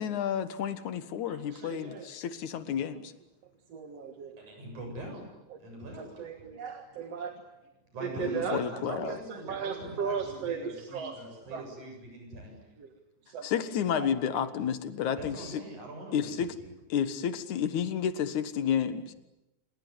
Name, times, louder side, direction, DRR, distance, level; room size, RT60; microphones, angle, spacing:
voice 1, 0.0-3.1 8.2-9.2 13.4-15.6 16.1-16.5 16.9-19.1, left 8 dB, 80° left, 12 dB, 2.9 m, -31 dB
voice 2, 1.3-2.1 3.7-4.4 5.5-5.6 6.0-7.3 8.0-8.6 8.9-11.2 11.5-11.7 12.8-12.9 13.3-13.6 14.0-14.1, right 6 dB, 60° right, 5 dB, 2.7 m, -36 dB
voice 3, 4.4-5.2 5.6-6.3 7.9-12.6 15.2-16.4, right 1 dB, 85° right, 2 dB, 9.0 m, -43 dB
27.5 x 21.0 x 9.8 m, 0.94 s
omnidirectional pair, 3.4 m